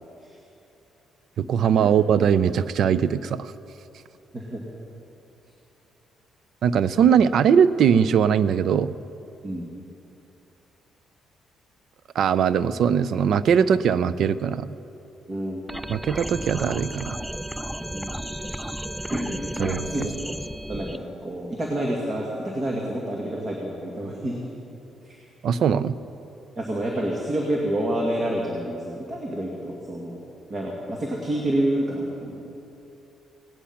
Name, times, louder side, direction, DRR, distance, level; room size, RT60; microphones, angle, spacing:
voice 1, 1.4-3.5 6.6-9.0 12.1-14.7 15.9-17.2 19.6-20.1 25.4-26.0, right 7 dB, 70° right, 15 dB, 0.5 m, -21 dB
voice 2, 15.3-15.6 17.9-18.2 18.5-18.6 19.1-20.1 20.7-24.5 25.0-25.2 26.6-30.2 30.5-32.5, right 1 dB, 35° right, -2 dB, 2.1 m, -28 dB
sound 1, 15.7-21.0, right 1 dB, 5° right, 0.4 m, -33 dB
17.5 x 10.0 x 5.7 m, 2.8 s
cardioid pair, 90°, 0 cm